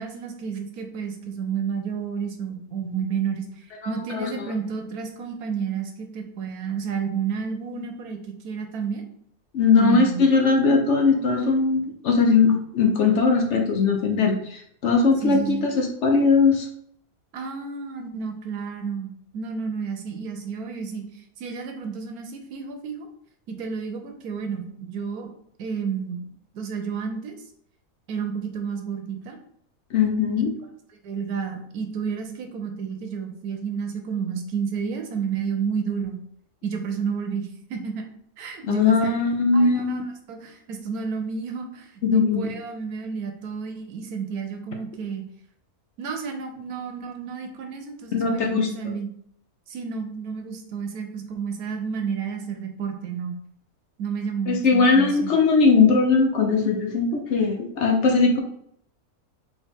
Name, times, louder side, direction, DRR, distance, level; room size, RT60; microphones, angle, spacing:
voice 1, 0.0-3.4 3.8-9.0 9.8-10.3 15.2-15.6 17.3-23.1 23.5-25.3 25.6-26.2 26.5-27.4 28.1-29.4 31.0-36.2 36.6-38.0 38.4-39.2 39.5-45.2 46.0-49.1 49.7-53.4 54.0-55.3, right 6 dB, 80° right, 5 dB, 1.2 m, -31 dB
voice 2, 3.8-4.3 9.5-16.7 29.9-30.5 38.6-40.0 42.0-42.5 48.1-48.7 54.5-58.4, left 4 dB, 60° left, 3 dB, 0.8 m, -20 dB
4.2 x 3.4 x 3.5 m, 0.68 s
omnidirectional pair, 1.6 m